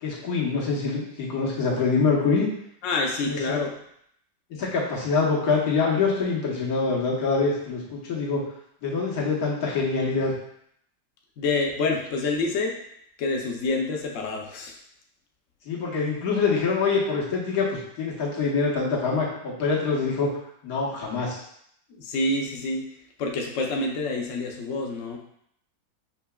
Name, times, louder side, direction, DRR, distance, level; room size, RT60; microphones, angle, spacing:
voice 1, 0.0-2.5 3.2-3.6 4.5-8.4 8.8-10.3 15.6-20.3 20.6-21.4, left 4 dB, 60° left, -5 dB, 1.4 m, -25 dB
voice 2, 2.8-3.7 11.4-12.7 13.2-14.8 21.9-22.8 23.2-25.2, left 3 dB, 80° left, 0 dB, 0.6 m, -27 dB
5.4 x 2.8 x 2.2 m, 0.71 s
omnidirectional pair, 1.9 m